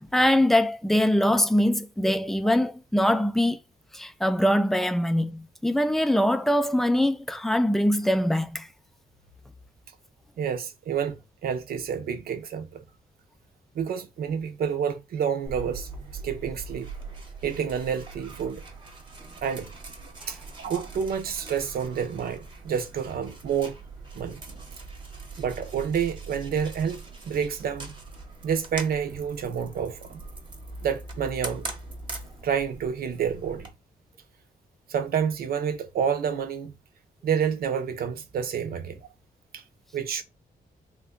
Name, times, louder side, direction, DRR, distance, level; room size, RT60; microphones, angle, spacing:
voice 1, 0.0-3.6 3.9-8.7 20.2-20.4, left 1 dB, ahead, 0.3 m, -23 dB
voice 2, 10.4-12.7 13.7-15.9 16.2-16.9 17.4-18.6 19.4-19.7 20.3-23.8 24.1-24.4 25.4-27.9 28.4-30.2 30.8-31.6 32.4-33.7 34.9-36.7 37.2-39.0 39.5-39.6 39.9-40.2, right 7 dB, 75° right, 0.7 m, -29 dB
sound 1, 15.5-33.7, right 3 dB, 30° right, 0.9 m, -41 dB
3.3 x 2.3 x 3.8 m
cardioid pair, 115°, 16 cm